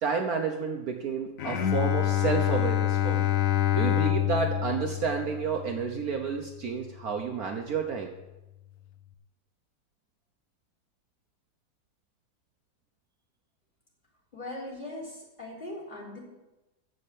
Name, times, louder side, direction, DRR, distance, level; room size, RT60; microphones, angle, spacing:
voice 1, 0.0-3.3 3.7-8.1, right 5 dB, 55° right, 3 dB, 1.4 m, -30 dB
Bowed string instrument, 1.4-6.7, left 12 dB, 60° left, 0.9 m, -27 dB
voice 2, 14.3-16.2, left 1 dB, 25° left, -3 dB, 3.7 m, -40 dB
14.5 x 5.5 x 8.6 m, 1.0 s
omnidirectional pair, 2.0 m